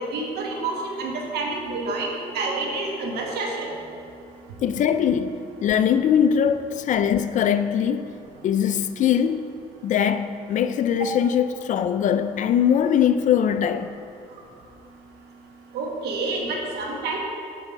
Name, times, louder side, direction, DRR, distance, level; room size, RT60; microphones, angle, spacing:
voice 1, 0.0-3.7 15.7-17.2, right 3 dB, 75° right, 1.4 m, -28 dB
voice 2, 4.6-8.1 8.4-9.5 9.8-13.9, left 8 dB, 50° left, 0.4 m, -21 dB
8.8 x 3.5 x 5.5 m
cardioid pair, 110°, 17 cm